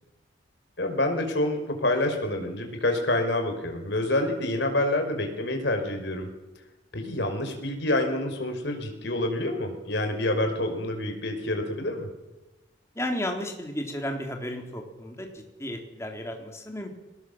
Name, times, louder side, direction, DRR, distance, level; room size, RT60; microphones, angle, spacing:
voice 1, 0.8-6.3 6.9-12.1, left 1 dB, 60° left, 4 dB, 5.4 m, -27 dB
voice 2, 13.0-16.9, left 1 dB, 15° left, 2 dB, 3.6 m, -33 dB
24.5 x 19.0 x 7.4 m, 1.0 s
head